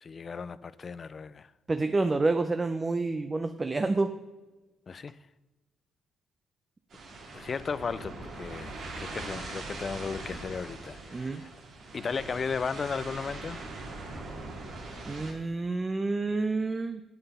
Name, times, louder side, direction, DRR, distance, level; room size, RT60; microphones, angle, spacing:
voice 1, 0.0-1.5 4.9-5.2 7.3-11.5 11.9-13.6, left 5 dB, 40° left, 0.4 m, -35 dB
voice 2, 1.7-4.1 11.1-11.4 15.1-17.0, right 3 dB, 25° right, 0.5 m, -28 dB
sound 1, 6.9-15.3, right 2 dB, 65° right, 2.4 m, -41 dB
8.0 x 7.8 x 5.4 m
cardioid pair, 90°, 0 cm